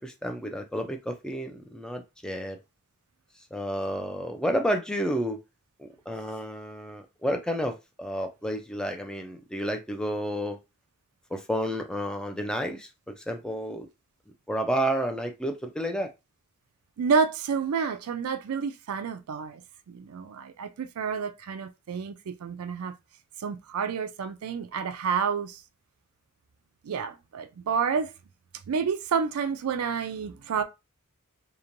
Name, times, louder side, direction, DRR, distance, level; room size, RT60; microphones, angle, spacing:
voice 1, 0.0-2.6 3.5-5.4 5.8-10.6 11.3-13.9 14.5-16.1, equal, 5° left, 0.3 m, -31 dB
voice 2, 17.0-19.6 19.9-23.0 23.4-25.6 26.8-28.1 28.7-30.6, right 6 dB, 85° right, 0.4 m, -29 dB
2.9 x 2.1 x 2.6 m
head